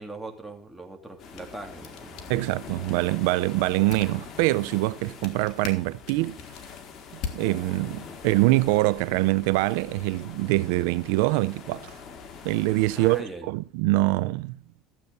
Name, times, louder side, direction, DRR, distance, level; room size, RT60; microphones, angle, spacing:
voice 1, 0.0-2.4 13.0-13.5, right 2 dB, 5° right, 3.0 m, -40 dB
sound 1, 1.1-8.2, left 6 dB, 55° left, 2.8 m, -43 dB
sound 2, 1.2-13.2, left 6 dB, 40° left, 2.3 m, -44 dB
voice 2, 2.3-6.4 7.1-12.0 12.4-14.6, right 19 dB, 75° right, 0.5 m, -24 dB
14.5 x 8.3 x 5.4 m
supercardioid pair, 130°, 0 cm